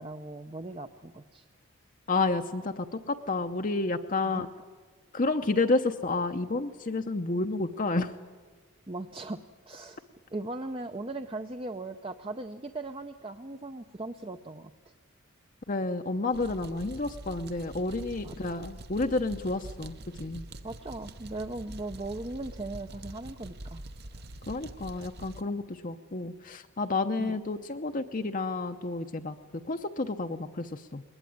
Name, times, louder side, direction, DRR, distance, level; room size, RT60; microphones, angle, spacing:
voice 1, 0.0-1.5 4.2-4.4 8.9-10.0 10.3-14.7 18.2-18.3 20.6-23.8 27.2-27.4, right 2 dB, 25° right, 7 dB, 0.6 m, -38 dB
voice 2, 2.1-4.5 5.1-8.1 15.7-20.4 24.5-29.3 29.7-31.0, left 3 dB, 40° left, 6 dB, 0.8 m, -30 dB
sound 1, 16.3-25.4, right 1 dB, 50° right, 1.0 m, -45 dB
21.5 x 20.0 x 9.4 m, 1.5 s
head